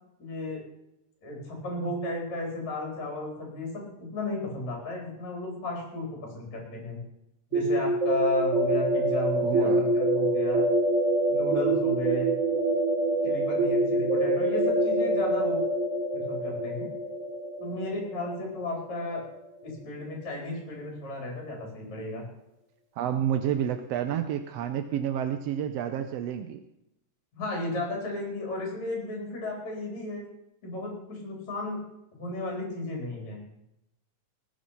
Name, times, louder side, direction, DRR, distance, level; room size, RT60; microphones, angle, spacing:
voice 1, 0.2-0.6 1.2-3.9 4.1-7.0 7.5-10.6 11.3-12.3 13.2-15.6 16.1-16.9 17.6-19.3 19.6-22.2 27.3-30.3 30.6-31.8 32.1-33.4, left 2 dB, 60° left, -1 dB, 5.3 m, -34 dB
sound 1, 7.5-19.2, right 1 dB, 30° right, 1.6 m, -26 dB
voice 2, 9.4-9.8 22.9-26.6, right 9 dB, 75° right, 8 dB, 1.6 m, -29 dB
19.5 x 9.6 x 5.8 m, 0.85 s
omnidirectional pair, 3.6 m